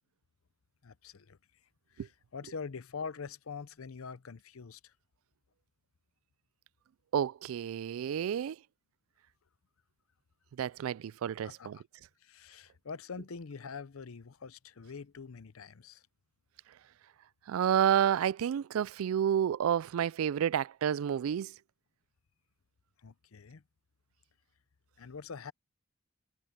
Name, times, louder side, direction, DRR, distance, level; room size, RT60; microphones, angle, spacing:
voice 1, 0.8-1.4 1.9-4.9 11.4-11.8 12.2-16.0 23.0-23.6 25.0-25.5, left 5 dB, 85° left, 0.7 m, -44 dB
voice 2, 7.1-8.6 10.6-11.8 17.5-21.5, right 9 dB, 85° right, 0.3 m, -30 dB
head